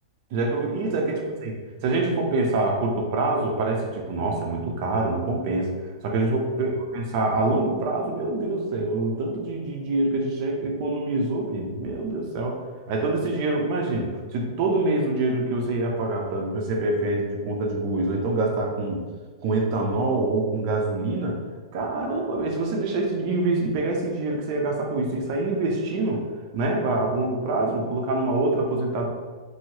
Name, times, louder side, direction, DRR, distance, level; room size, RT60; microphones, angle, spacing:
voice 1, 0.3-1.5 1.8-12.6 12.9-19.0 19.4-21.4 21.7-26.2 26.5-29.1, right 2 dB, 40° right, 0 dB, 0.6 m, -25 dB
3.0 x 2.7 x 2.8 m, 1.4 s
hypercardioid pair, 155°, 3 cm